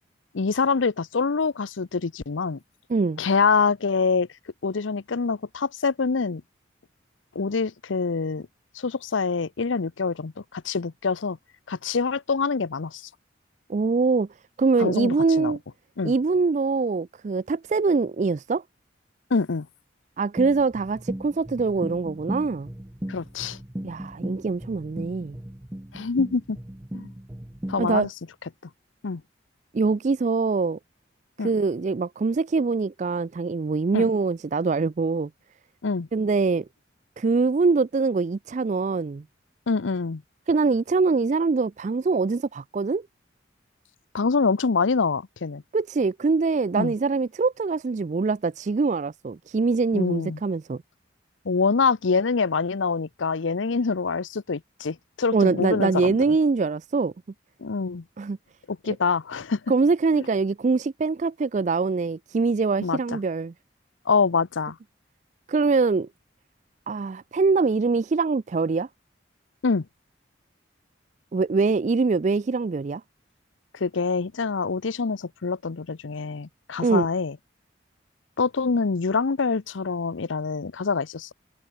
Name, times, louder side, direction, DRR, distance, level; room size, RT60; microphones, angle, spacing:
voice 1, 0.3-2.6 3.2-4.3 4.6-6.4 7.3-8.5 8.7-11.4 11.7-13.1 14.8-15.5 16.0-16.1 19.3-19.7 23.1-23.6 25.9-26.6 26.9-27.1 27.7-28.1 29.0-29.2 31.4-31.5 33.9-34.1 35.8-36.1 39.7-40.2 44.1-45.6 46.8-46.9 49.9-50.4 51.4-56.3 57.6-58.0 58.7-59.6 60.1-60.3 62.8-63.2 64.1-64.8 69.6-69.9 73.7-77.4 78.4-81.3, left 4 dB, 85° left, 0.7 m, -25 dB
voice 2, 2.9-3.2 13.7-14.3 14.6-15.6 16.0-18.6 20.2-22.7 23.8-25.4 27.8-28.1 29.7-30.8 31.4-35.3 36.1-36.7 37.2-39.2 40.5-43.0 45.7-50.8 55.3-57.1 58.2-58.4 59.7-63.5 65.5-66.1 66.9-68.9 71.3-73.0 76.8-77.1, right 4 dB, 40° right, 0.4 m, -23 dB
sound 1, 20.4-28.1, right 1 dB, 15° right, 0.8 m, -37 dB
head